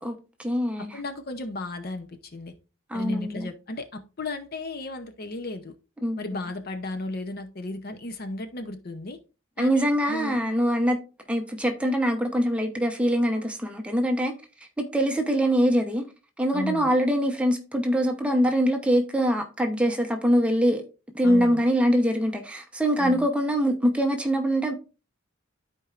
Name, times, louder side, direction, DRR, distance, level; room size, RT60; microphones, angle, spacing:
voice 1, 0.0-1.0 2.9-3.5 6.0-6.2 9.6-11.0 11.3-14.3 14.8-16.0 16.4-20.8 21.1-24.7, equal, 5° right, 0.8 m, -23 dB
voice 2, 0.9-2.5 2.9-5.7 6.2-9.2 9.6-10.4 16.5-16.9 21.2-21.6 23.0-23.3, left 2 dB, 45° left, 0.7 m, -34 dB
13.0 x 4.5 x 2.5 m
head